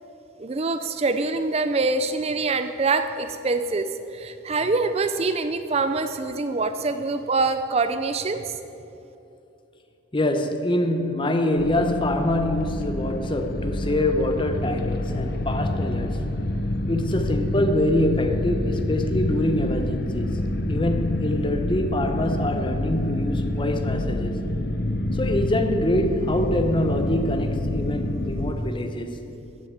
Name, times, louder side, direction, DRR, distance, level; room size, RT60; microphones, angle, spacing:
voice 1, 0.4-8.4, right 3 dB, 30° right, 9 dB, 0.4 m, -25 dB
voice 2, 10.1-16.2 16.9-20.3 20.7-24.3 25.1-29.2, left 1 dB, 25° left, 7 dB, 0.9 m, -25 dB
sound 1, 11.6-28.5, left 1 dB, 50° left, 0.6 m, -27 dB
14.5 x 6.8 x 9.2 m, 2.8 s
head